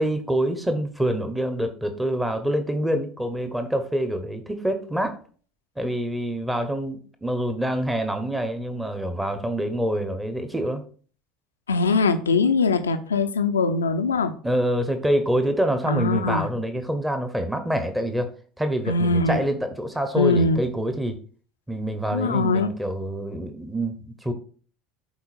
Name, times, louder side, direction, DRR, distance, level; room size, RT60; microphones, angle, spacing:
voice 1, 0.0-5.2 5.8-10.8 14.4-18.3 18.6-21.2 21.7-24.3, right 1 dB, 10° right, 8 dB, 1.0 m, -26 dB
voice 2, 11.7-14.3 15.9-16.5 18.9-19.4 20.2-20.6 22.1-22.7, left 3 dB, 80° left, 9 dB, 0.6 m, -21 dB
12.0 x 4.2 x 2.5 m, 0.42 s
figure-of-eight pair, 70°, 0 cm